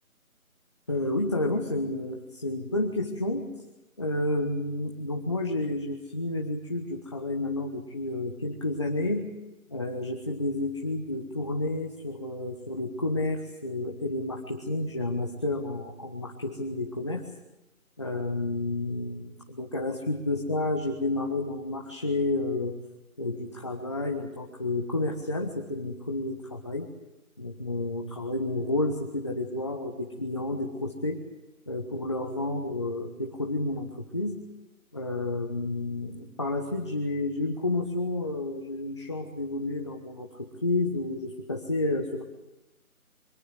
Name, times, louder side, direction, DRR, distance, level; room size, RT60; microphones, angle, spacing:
voice 1, 0.9-3.5 4.0-9.3 9.7-17.3 18.0-22.8 23.2-26.9 27.4-31.2 31.7-34.4 34.9-42.2, left 2 dB, 20° left, 2 dB, 1.1 m, -30 dB
24.5 x 19.0 x 8.0 m, 0.99 s
figure-of-eight pair, 165°, 44 cm